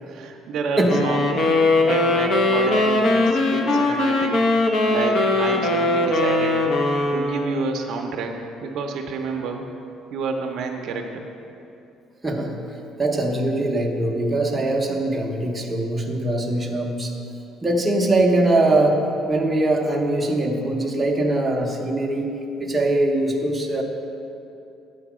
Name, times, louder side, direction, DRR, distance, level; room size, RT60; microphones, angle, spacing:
voice 1, 0.0-1.3 1.8-4.5 4.9-6.6 7.1-9.7 10.1-11.3, right 4 dB, 55° right, 3 dB, 0.5 m, -29 dB
voice 2, 0.8-1.2 12.2-12.5 13.0-17.1 17.6-19.0 19.3-22.3 22.6-23.8, right 2 dB, 10° right, -1 dB, 0.7 m, -22 dB
sound 1, 0.9-7.7, left 2 dB, 40° left, 0.6 m, -20 dB
8.8 x 3.9 x 6.0 m, 2.8 s
cardioid pair, 165°, 0 cm